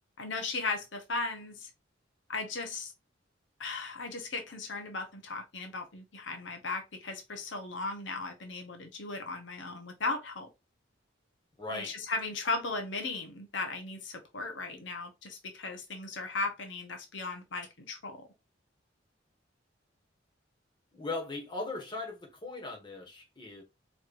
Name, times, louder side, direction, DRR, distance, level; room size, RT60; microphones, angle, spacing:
voice 1, 0.2-1.7 2.3-2.9 3.6-10.5 11.7-18.2, left 3 dB, 75° left, 1.0 m, -36 dB
voice 2, 11.6-12.0 20.9-23.6, left 2 dB, 25° left, 1.4 m, -38 dB
4.6 x 3.2 x 2.5 m
head